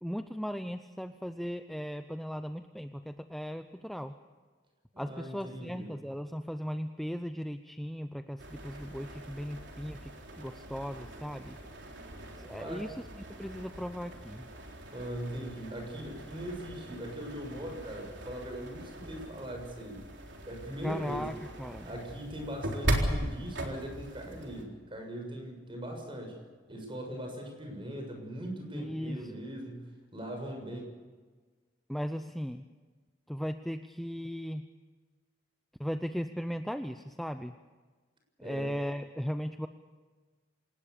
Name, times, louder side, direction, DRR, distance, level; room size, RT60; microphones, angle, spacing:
voice 1, 0.0-4.1 5.0-10.1 10.4-11.6 12.4-12.9 13.4-14.5 20.8-21.3 21.6-21.9 28.7-29.5 31.9-32.6 33.3-34.6 35.8-37.5 38.4-39.7, equal, ahead, 8 dB, 0.7 m, -37 dB
voice 2, 4.9-5.9 12.6-12.9 14.9-20.0 20.5-21.3 21.8-26.4 26.7-30.8 38.4-38.7, equal, 30° right, 3 dB, 7.0 m, -40 dB
sound 1, 8.4-24.6, right 1 dB, 70° right, 4.0 m, -39 dB
27.0 x 19.0 x 6.9 m, 1.4 s
head